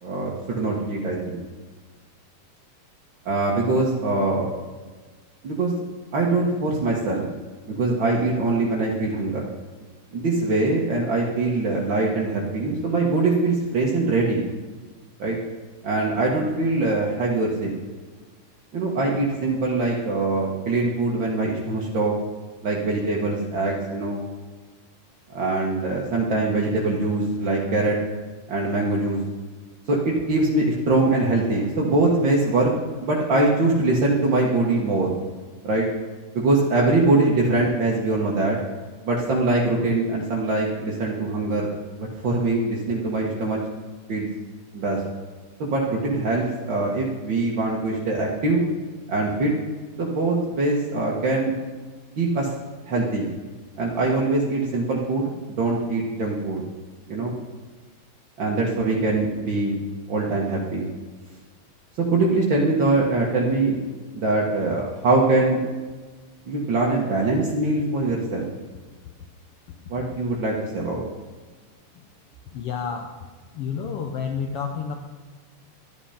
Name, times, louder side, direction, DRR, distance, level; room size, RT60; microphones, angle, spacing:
voice 1, 0.0-1.4 3.2-4.5 5.4-5.7 6.1-7.2 7.7-9.5 10.1-14.4 15.2-15.4 15.8-17.7 18.7-22.1 22.6-24.2 25.3-28.0 28.5-29.2 29.9-32.7 33.0-35.1 35.6-35.9 36.3-38.6 39.0-43.6 44.1-44.3 44.7-45.0 45.6-48.7 49.1-49.5 50.0-51.5 52.2-52.5 52.9-53.3 53.8-56.6 57.1-57.3 58.4-59.8 60.1-60.9 62.0-63.8 64.1-65.7 66.5-68.5 69.9-71.0, right 2 dB, 50° right, -3 dB, 1.6 m, -23 dB
voice 2, 72.5-73.2 73.5-74.9, left 6 dB, 85° left, 4 dB, 1.3 m, -30 dB
11.5 x 11.0 x 5.7 m, 1.4 s
omnidirectional pair, 3.8 m